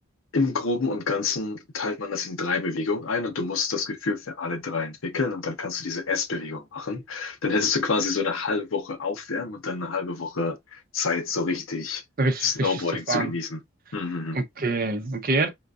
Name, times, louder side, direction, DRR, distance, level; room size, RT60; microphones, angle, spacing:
voice 1, 0.3-12.0 12.4-13.6 13.9-14.4, left 4 dB, 85° left, 0.8 m, -28 dB
voice 2, 12.2-12.8 13.1-13.3 14.3-15.5, right 3 dB, 45° right, 0.6 m, -25 dB
3.8 x 2.4 x 2.4 m
head